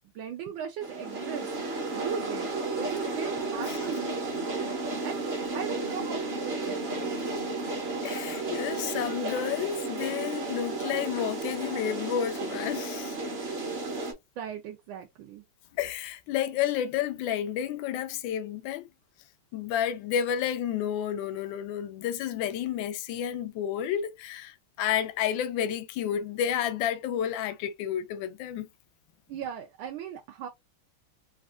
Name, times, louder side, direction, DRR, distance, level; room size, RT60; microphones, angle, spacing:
voice 1, 0.1-1.5 1.9-2.5 2.7-4.2 5.0-5.3 5.5-7.1 14.4-15.4 29.3-30.5, right 8 dB, 75° right, 1.3 m, -38 dB
sound 1, 0.8-14.1, right 3 dB, 40° right, 1.0 m, -33 dB
voice 2, 8.0-13.2 15.8-18.9 19.5-28.7, left 9 dB, 75° left, 1.2 m, -31 dB
4.1 x 2.4 x 2.4 m
omnidirectional pair, 2.3 m